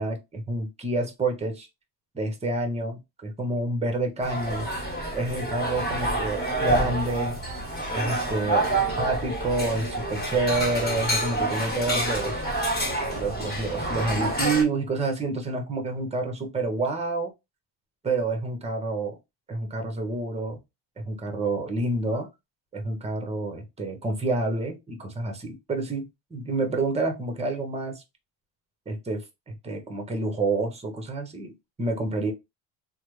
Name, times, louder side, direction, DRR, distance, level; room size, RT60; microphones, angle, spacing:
voice 1, 0.0-1.7 2.1-4.7 5.1-7.4 7.9-8.6 9.0-12.4 13.1-17.3 18.0-19.2 19.5-20.6 21.0-22.3 22.7-28.0 28.9-29.2 29.6-31.5 31.8-32.3, right 2 dB, 15° right, 0.7 m, -28 dB
sound 1, 4.2-14.6, right 1 dB, 20° left, 1.4 m, -28 dB
3.1 x 2.1 x 3.1 m
cardioid pair, 125°, 44 cm